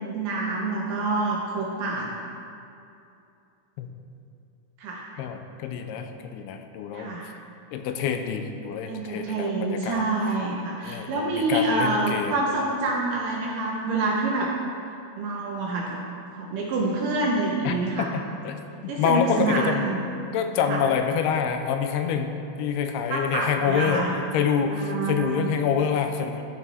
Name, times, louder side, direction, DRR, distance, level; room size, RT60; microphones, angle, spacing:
voice 1, 0.1-2.1 4.8-5.1 6.9-7.3 8.9-14.5 15.2-16.0 16.3-18.1 18.9-20.0 20.7-20.8 23.1-24.1 24.7-25.5, right 2 dB, 75° right, -2 dB, 2.0 m, -27 dB
voice 2, 5.2-7.1 7.7-10.0 10.8-12.3 17.6-19.9 20.3-24.1 24.3-26.4, left 7 dB, 90° left, 6 dB, 2.6 m, -27 dB
13.5 x 5.8 x 4.1 m, 2.6 s
omnidirectional pair, 4.6 m